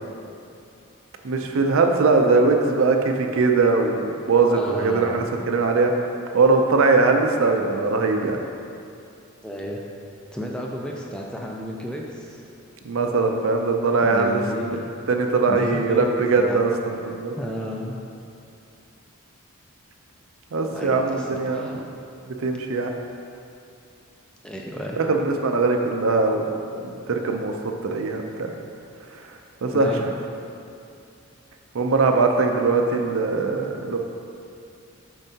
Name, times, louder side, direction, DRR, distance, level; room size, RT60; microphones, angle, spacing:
voice 1, 1.2-5.9 6.3-8.4 12.8-14.8 15.1-17.3 20.5-21.7 22.4-22.9 25.0-26.4 26.8-27.5 27.8-28.5 29.6-30.1 31.7-34.0, right 3 dB, 65° right, 4 dB, 0.5 m, -21 dB
voice 2, 4.5-5.3 9.4-9.8 10.3-12.4 14.0-14.9 15.5-16.6 17.4-18.0 20.7-21.8 24.4-25.0 29.7-30.0, equal, 5° left, -1 dB, 0.4 m, -32 dB
7.0 x 5.4 x 2.8 m, 2.6 s
head